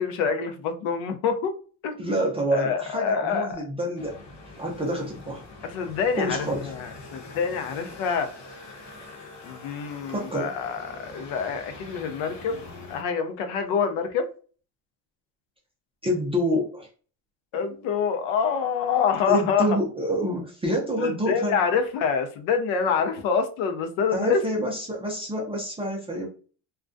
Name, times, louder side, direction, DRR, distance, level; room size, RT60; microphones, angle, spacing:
voice 1, 0.0-1.6 1.8-1.9 2.5-3.5 5.6-8.3 9.4-12.6 12.9-14.3 17.5-19.7 21.0-24.4, left 6 dB, 70° left, 7 dB, 0.6 m, -26 dB
voice 2, 2.0-4.2 4.5-5.4 6.2-6.7 10.1-10.5 16.0-16.9 19.3-21.6 24.1-26.3, equal, 15° right, -2 dB, 0.3 m, -27 dB
sound 1, 4.0-13.0, left 3 dB, 35° left, 0.9 m, -44 dB
2.3 x 2.1 x 2.5 m, 0.39 s
cardioid pair, 110°, 50 cm